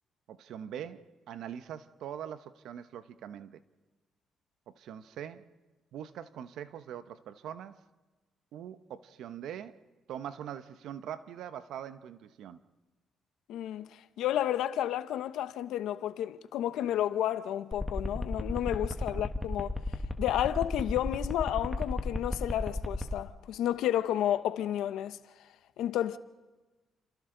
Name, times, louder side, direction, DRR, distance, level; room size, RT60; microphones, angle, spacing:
voice 1, 0.3-3.6 4.7-5.5 5.9-7.8 8.5-9.8 10.1-12.6 19.1-19.2, right 9 dB, 80° right, 1.0 m, -42 dB
voice 2, 13.5-19.8 20.2-25.2 25.8-26.2, left 11 dB, 85° left, 0.9 m, -31 dB
sound 1, 17.7-23.2, left 2 dB, 15° left, 1.6 m, -33 dB
30.0 x 27.5 x 3.9 m
cardioid pair, 90°, 0 cm